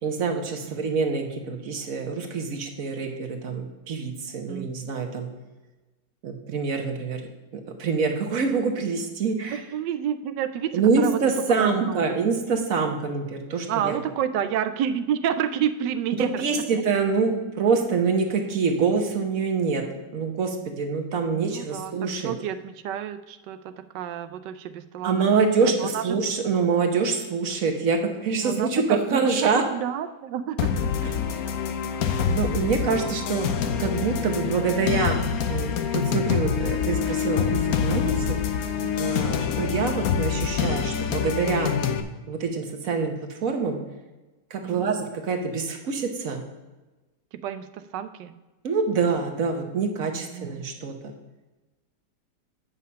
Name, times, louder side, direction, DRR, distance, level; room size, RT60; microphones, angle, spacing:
voice 1, 0.0-5.3 6.2-7.3 7.8-9.6 10.7-14.0 16.2-19.8 20.1-22.3 25.0-29.6 32.3-33.5 33.8-35.2 35.5-38.4 39.0-41.7 42.3-43.8 44.5-46.4 48.6-50.9, right 5 dB, 55° right, 4 dB, 1.3 m, -25 dB
voice 2, 9.5-11.2 11.6-12.0 13.7-16.6 21.3-25.2 25.6-26.2 28.4-31.2 32.9-33.1 38.8-39.1 44.6-45.0 47.3-48.3 50.3-50.6, right 9 dB, 90° right, 11 dB, 1.3 m, -30 dB
sound 1, 30.6-42.0, left 7 dB, 65° left, 1.1 m, -26 dB
8.6 x 5.6 x 5.5 m, 1.1 s
omnidirectional pair, 1.8 m